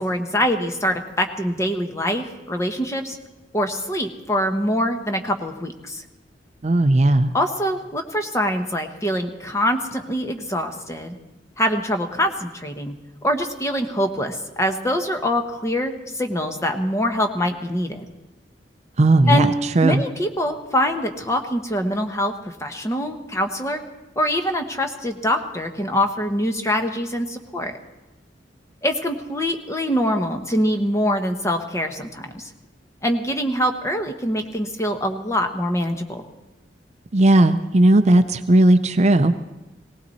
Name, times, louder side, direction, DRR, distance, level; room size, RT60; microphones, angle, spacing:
voice 1, 0.0-3.2 3.5-6.0 7.3-11.2 11.6-12.9 13.2-18.0 19.3-19.5 19.8-23.8 24.2-27.7 28.8-32.5 33.0-36.3, equal, 15° left, 5 dB, 1.1 m, -24 dB
voice 2, 6.6-7.3 19.0-20.0 37.1-39.3, right 2 dB, 40° right, 10 dB, 0.5 m, -16 dB
19.0 x 18.0 x 4.2 m, 1.0 s
head